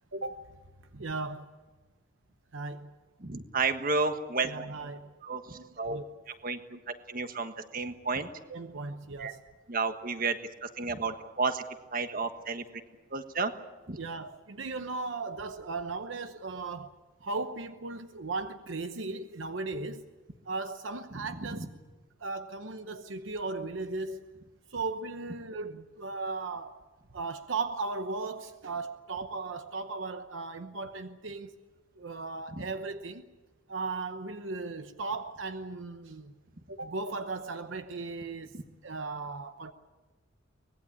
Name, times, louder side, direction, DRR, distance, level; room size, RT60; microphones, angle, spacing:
voice 1, 0.1-0.5 0.9-1.5 2.5-2.9 4.4-5.1 5.6-6.0 6.7-6.8 8.5-9.4 14.0-16.9 17.2-20.1 20.4-21.6 22.2-24.3 24.7-26.8 27.1-31.6 32.0-33.3 33.7-36.3 36.7-38.5 38.8-39.7, right 3 dB, 70° right, 0.9 m, -37 dB
voice 2, 3.2-4.5 5.2-6.6 6.9-8.3 9.2-9.3 9.7-11.6 11.9-12.6 13.1-13.5 13.9-14.0 21.1-21.7 32.5-32.7 38.5-38.6, right 4 dB, 45° right, 1.4 m, -32 dB
24.0 x 20.0 x 8.6 m
head